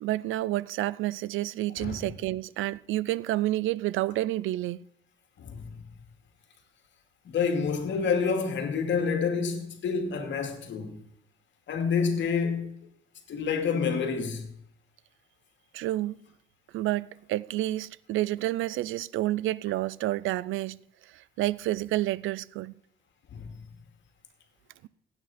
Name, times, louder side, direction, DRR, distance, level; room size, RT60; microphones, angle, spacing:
voice 1, 0.0-4.9 15.7-16.2 16.7-20.8 21.1-22.7, right 15 dB, 85° right, 0.5 m, -29 dB
voice 2, 5.4-5.8 7.2-11.0 11.7-12.8 13.3-14.5 23.3-23.5, left 5 dB, 70° left, 2.3 m, -28 dB
16.0 x 8.9 x 4.2 m
cardioid pair, 90°, 20 cm